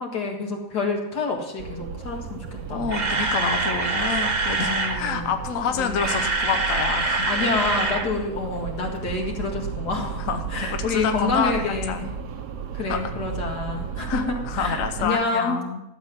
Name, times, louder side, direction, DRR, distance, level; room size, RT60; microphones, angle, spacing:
voice 1, 0.0-3.2 4.7-5.3 5.7-6.1 7.3-10.2 10.5-12.1 12.7-15.6, left 3 dB, 85° left, 0 dB, 2.6 m, -28 dB
sound 1, 1.6-15.2, right 7 dB, 90° right, 1.5 m, -34 dB
Camera, 2.6-5.0 5.8-8.1 8.3-8.5 8.9-9.0, right 3 dB, 30° right, 1.0 m, -25 dB
voice 2, 2.7-7.4 10.2-12.0 12.9-13.1 14.1-15.8, left 6 dB, 60° left, 6 dB, 1.1 m, -28 dB
12.5 x 7.4 x 5.8 m, 0.92 s
omnidirectional pair, 1.7 m